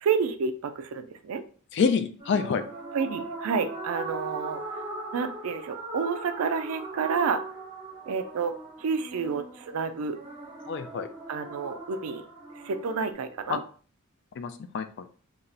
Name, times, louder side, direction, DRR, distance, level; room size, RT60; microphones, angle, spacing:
voice 1, 0.0-1.4 2.9-4.6 5.1-7.4 8.1-10.2 11.3-12.3 12.6-13.6, right 5 dB, 75° right, 9 dB, 0.4 m, -29 dB
voice 2, 1.7-2.6 10.7-11.1 13.5-13.6 14.4-15.0, left 5 dB, 55° left, 10 dB, 0.3 m, -27 dB
sound 1, 2.2-13.1, right 3 dB, 20° right, 0.7 m, -40 dB
2.4 x 2.0 x 3.8 m, 0.41 s
head